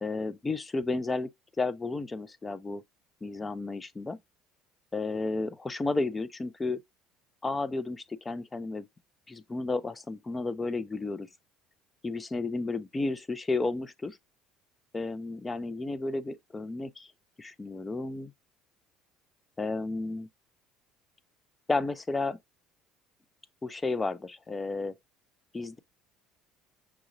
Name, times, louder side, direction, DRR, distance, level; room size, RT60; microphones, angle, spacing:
voice 1, 0.0-1.3 1.6-2.8 3.2-4.2 4.9-6.8 7.4-8.9 9.3-11.3 12.0-14.2 14.9-17.1 17.4-18.3 19.6-20.3 21.7-22.4 23.6-24.9 25.5-25.8, left 3 dB, 15° left, 0.4 m, -32 dB
5.9 x 2.6 x 2.9 m
cardioid pair, 135°, 0 cm